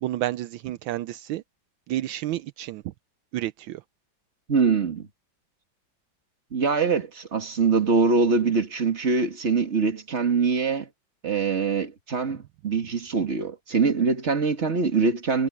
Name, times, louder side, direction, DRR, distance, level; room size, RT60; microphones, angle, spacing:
voice 1, 0.0-1.4 1.9-2.9 3.3-3.8, right 14 dB, 80° right, 1.4 m, -30 dB
voice 2, 4.5-5.1 6.5-10.9 11.2-15.5, right 4 dB, 35° right, 2.3 m, -23 dB
omnidirectional pair, 2.1 m